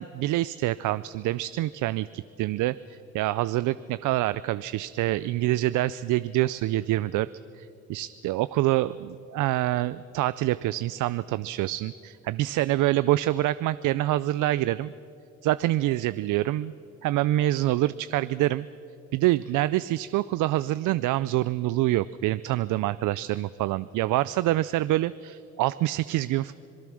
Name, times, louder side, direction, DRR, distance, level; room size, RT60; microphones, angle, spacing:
voice 1, 0.0-7.3 7.6-14.9 15.4-16.7 17.0-18.7 19.1-26.5, right 16 dB, 85° right, 16 dB, 0.5 m, -26 dB
26.5 x 19.0 x 6.3 m, 2.8 s
cardioid pair, 90°, 30 cm